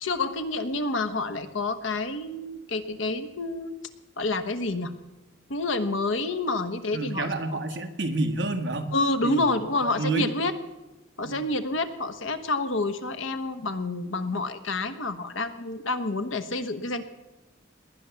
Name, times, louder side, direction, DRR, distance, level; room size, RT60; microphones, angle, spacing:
voice 1, 0.0-3.8 4.2-4.9 5.5-7.3 8.9-10.5 11.2-17.0, left 2 dB, 85° left, 9 dB, 1.3 m, -28 dB
voice 2, 6.9-8.9 9.2-10.3 11.2-11.4, right 2 dB, 65° right, 7 dB, 1.6 m, -29 dB
19.0 x 10.5 x 7.0 m, 1.1 s
head